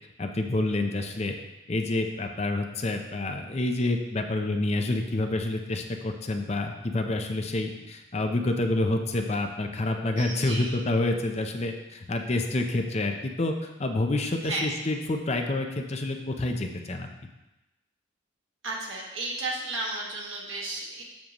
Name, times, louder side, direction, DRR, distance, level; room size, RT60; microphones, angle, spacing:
voice 1, 0.2-1.4 1.7-17.1, left 2 dB, 35° left, 4 dB, 0.6 m, -28 dB
voice 2, 10.2-10.7 14.4-14.7 18.6-21.0, right 2 dB, 90° right, -3 dB, 1.7 m, -33 dB
7.3 x 6.5 x 3.0 m, 1.0 s
head